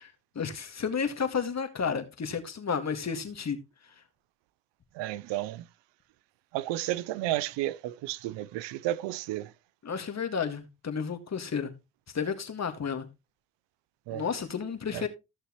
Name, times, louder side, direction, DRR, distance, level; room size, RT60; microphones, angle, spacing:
voice 1, 0.0-3.6 9.8-11.7 12.1-13.1 14.1-15.1, left 6 dB, 40° left, 2.0 m, -32 dB
voice 2, 4.9-5.7 6.5-9.5 14.1-14.2 14.9-15.1, right 15 dB, 80° right, 0.6 m, -32 dB
14.5 x 6.6 x 3.1 m
supercardioid pair, 70°, 42 cm